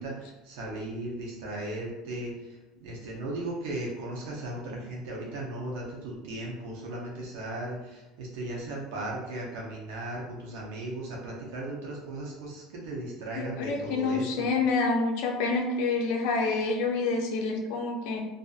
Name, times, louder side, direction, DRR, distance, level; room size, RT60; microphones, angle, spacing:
voice 1, 0.0-14.5, right 1 dB, 80° right, -3 dB, 0.7 m, -37 dB
voice 2, 13.4-18.2, left 3 dB, 75° left, 1 dB, 0.5 m, -27 dB
2.5 x 2.5 x 2.3 m, 1.0 s
cardioid pair, 135°, 0 cm